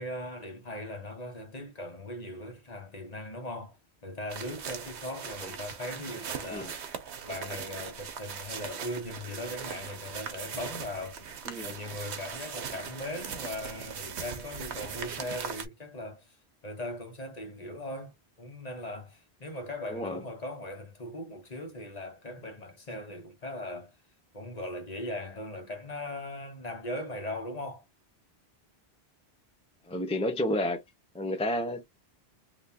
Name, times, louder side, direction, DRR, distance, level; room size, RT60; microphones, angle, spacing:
voice 1, 0.0-3.8 4.0-6.9 7.2-11.3 11.6-16.4 16.6-23.9 24.3-27.8, left 1 dB, 40° left, 1.1 m, -39 dB
sound 1, 4.3-15.7, right 7 dB, 90° right, 1.0 m, -40 dB
voice 2, 19.9-20.2 29.9-30.8 31.1-31.8, left 1 dB, 10° left, 0.3 m, -30 dB
3.4 x 2.8 x 2.7 m
omnidirectional pair, 1.1 m